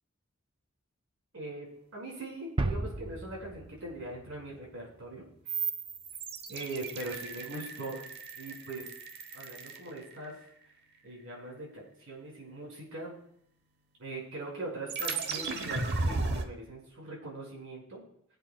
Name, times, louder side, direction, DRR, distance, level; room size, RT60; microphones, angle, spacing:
voice 1, 1.3-5.5 6.5-8.0 8.4-8.9 9.3-10.4 11.0-13.2 14.0-18.0, right 2 dB, 80° right, -1 dB, 5.0 m, -41 dB
sound 1, 2.6-5.2, right 2 dB, 25° right, 0.4 m, -35 dB
sound 2, 5.5-10.5 14.9-16.4, right 4 dB, 55° right, 0.9 m, -35 dB
20.5 x 8.1 x 2.3 m, 0.70 s
head